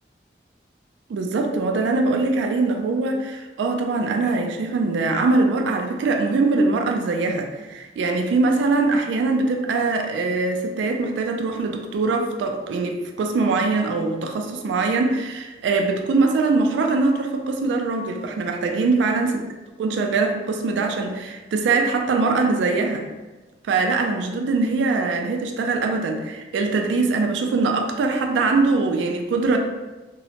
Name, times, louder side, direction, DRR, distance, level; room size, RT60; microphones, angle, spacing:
voice 1, 1.1-19.4 19.8-23.1 23.6-29.6, right 3 dB, 90° right, 4 dB, 0.3 m, -22 dB
2.8 x 2.1 x 2.8 m, 1.2 s
head